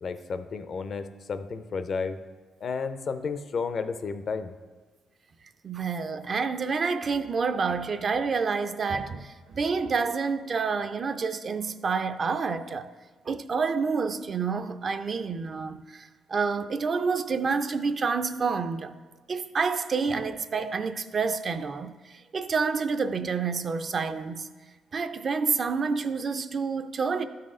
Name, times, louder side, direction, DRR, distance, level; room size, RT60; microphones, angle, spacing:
voice 1, 0.0-2.2 2.6-4.5, left 5 dB, 50° left, 0.4 m, -32 dB
voice 2, 5.6-12.9 13.3-19.0 19.3-24.5 24.9-27.2, right 5 dB, 45° right, 0.4 m, -28 dB
12.0 x 4.1 x 3.7 m
cardioid pair, 90°, 0 cm